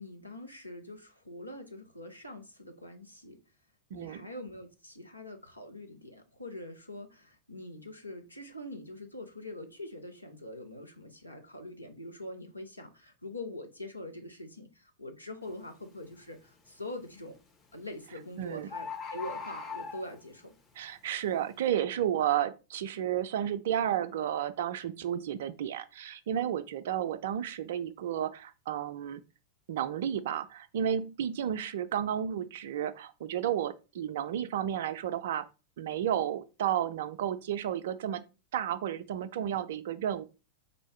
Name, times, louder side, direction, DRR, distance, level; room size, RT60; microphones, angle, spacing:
voice 1, 0.0-3.4 3.9-17.4 17.7-20.5, left 1 dB, 85° left, 0.7 m, -44 dB
voice 2, 3.9-4.3 18.4-18.7 20.8-29.2 29.7-35.5 35.8-38.2 38.5-40.2, right 10 dB, 55° right, 0.3 m, -32 dB
Bird, 15.4-15.7 16.2-16.7 17.7-17.8 18.1-18.2 18.4-18.5 18.7-20.4 21.0-21.1, left 5 dB, 20° left, 1.0 m, -40 dB
4.0 x 2.7 x 3.1 m
figure-of-eight pair, 90°, 0 cm